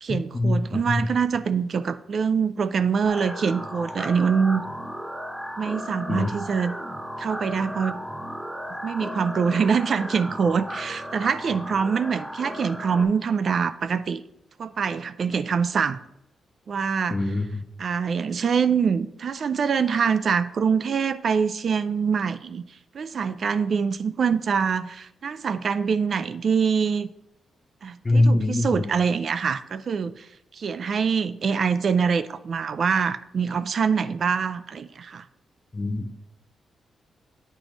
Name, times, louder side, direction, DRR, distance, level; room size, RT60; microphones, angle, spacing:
voice 1, 0.0-4.6 5.6-6.8 7.2-8.0 8.8-14.2 14.6-16.0 16.7-17.4 17.8-22.6 22.9-27.1 27.8-30.3 30.5-35.2, right 6 dB, 55° right, 14 dB, 0.3 m, -24 dB
sound 1, 3.0-13.0, equal, 5° right, 0.8 m, -35 dB
voice 2, 17.1-17.6 28.0-28.8 35.7-36.2, left 2 dB, 25° left, 3 dB, 0.5 m, -22 dB
8.9 x 3.0 x 5.1 m, 0.81 s
cardioid pair, 110°, 0 cm